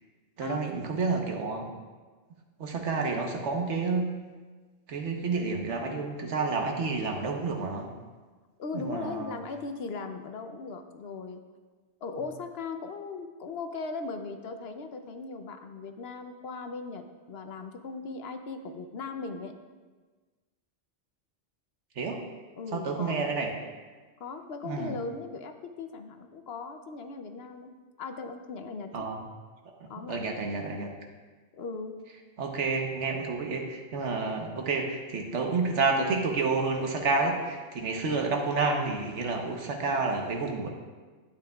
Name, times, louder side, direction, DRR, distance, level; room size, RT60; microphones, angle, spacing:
voice 1, 0.4-1.7 2.6-4.1 4.9-7.9 8.7-9.4 22.0-22.2 22.7-23.5 24.6-25.0 28.9-29.2 29.8-30.9 32.4-40.7, right 4 dB, 80° right, 2 dB, 1.3 m, -29 dB
voice 2, 8.6-11.4 12.0-19.5 22.6-23.2 24.2-27.7 28.0-29.1 29.9-30.2 31.6-31.9, left 4 dB, 65° left, 6 dB, 0.8 m, -38 dB
11.5 x 8.5 x 2.3 m, 1.4 s
omnidirectional pair, 1.2 m